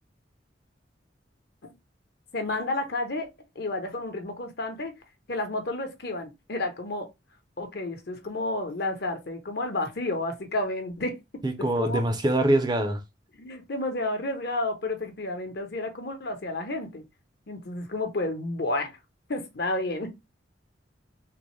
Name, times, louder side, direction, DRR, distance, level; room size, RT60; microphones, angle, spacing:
voice 1, 2.3-3.3 3.5-4.9 5.3-7.1 7.6-11.2 11.8-12.0 13.4-17.0 17.5-19.0 19.3-20.1, left 2 dB, 60° left, 0.9 m, -31 dB
voice 2, 11.4-13.0, right 1 dB, 25° right, 0.5 m, -24 dB
3.7 x 2.1 x 3.1 m
head